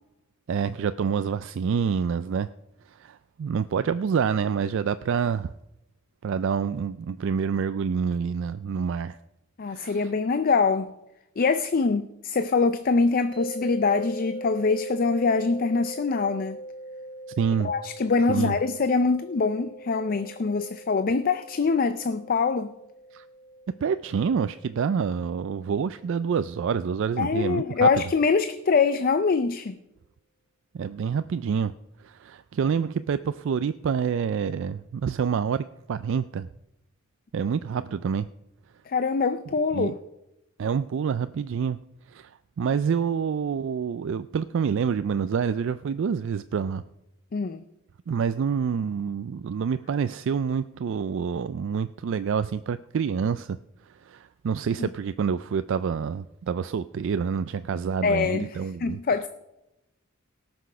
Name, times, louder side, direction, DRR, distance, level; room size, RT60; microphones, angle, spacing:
voice 1, 0.5-2.5 2.9-5.5 6.2-9.2 9.7-10.1 17.4-17.7 18.3-18.6 23.1-23.2 23.8-27.9 30.7-31.7 32.0-36.5 37.3-38.3 39.7-39.9 40.6-41.8 42.1-42.3 42.6-46.8 48.1-53.6 53.9-59.0, right 6 dB, 60° right, 0.3 m, -27 dB
voice 2, 9.6-10.9 11.4-16.6 17.6-22.7 27.2-29.8 38.9-40.0 47.3-47.6 54.8-54.9 58.0-59.3, left 4 dB, 40° left, 0.4 m, -24 dB
sound 1, 13.3-26.4, right 1 dB, 20° right, 3.8 m, -41 dB
18.0 x 6.1 x 5.6 m
head